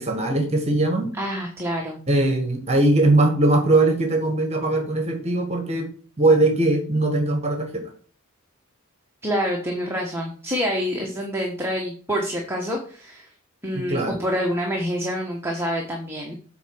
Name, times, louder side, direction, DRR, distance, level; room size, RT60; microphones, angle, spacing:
voice 1, 0.0-1.1 2.1-5.9 6.2-7.8 13.7-14.2, right 2 dB, 30° right, 4 dB, 1.6 m, -20 dB
voice 2, 1.1-2.0 9.2-13.3 13.6-16.3, equal, 10° right, 0 dB, 1.2 m, -27 dB
8.1 x 4.6 x 6.0 m, 0.43 s
head